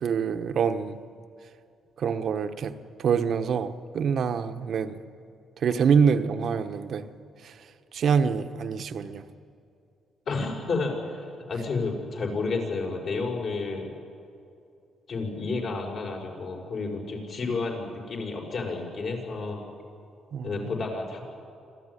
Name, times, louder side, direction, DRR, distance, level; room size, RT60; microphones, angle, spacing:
voice 1, 0.0-1.0 2.0-2.7 3.0-5.0 5.6-7.0 7.9-9.2 20.3-20.5, right 6 dB, 60° right, 10 dB, 1.2 m, -25 dB
voice 2, 10.3-13.9 15.1-19.6 20.4-21.2, left 3 dB, 55° left, 0 dB, 6.2 m, -31 dB
26.0 x 15.0 x 10.0 m, 2.6 s
cardioid pair, 90°, 0 cm